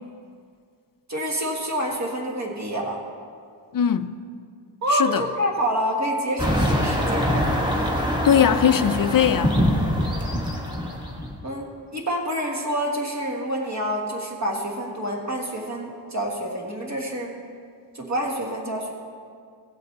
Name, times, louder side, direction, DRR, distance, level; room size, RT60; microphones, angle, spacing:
voice 1, 1.1-3.0 4.8-7.5 11.4-17.4 17.9-18.9, equal, 35° right, 1.7 m, -27 dB
voice 2, 3.7-4.2 4.9-5.2 8.2-9.7, left 8 dB, 45° left, 0.4 m, -20 dB
sound 1, 6.4-11.4, equal, 10° right, 1.3 m, -24 dB
16.5 x 7.9 x 3.4 m
wide cardioid pair, 100°, 49 cm